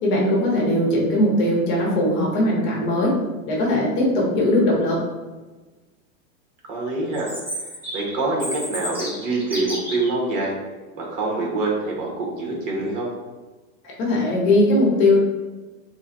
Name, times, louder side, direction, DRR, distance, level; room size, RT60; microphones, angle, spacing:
voice 1, 0.0-3.2 3.5-5.0 14.0-15.2, left 1 dB, 45° left, -4 dB, 1.0 m, -19 dB
voice 2, 6.7-7.3 7.9-10.5 10.9-13.1, right 2 dB, 55° right, -3 dB, 1.4 m, -25 dB
Chirp tweet, 7.1-10.1, equal, 5° right, 0.6 m, -32 dB
3.2 x 2.3 x 3.8 m, 1.2 s
supercardioid pair, 150°, 43 cm